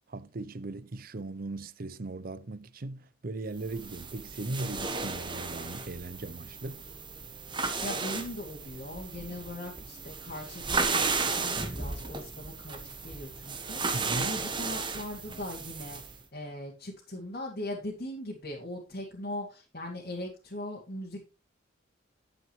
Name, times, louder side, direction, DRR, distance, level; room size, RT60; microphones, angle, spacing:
voice 1, 0.1-6.8 13.9-14.3, right 2 dB, 45° right, 0.6 m, -38 dB
sound 1, 3.6-16.2, right 4 dB, 25° right, 1.1 m, -34 dB
voice 2, 7.8-13.8 14.2-21.3, left 1 dB, 50° left, 2.4 m, -40 dB
12.0 x 7.8 x 3.1 m
head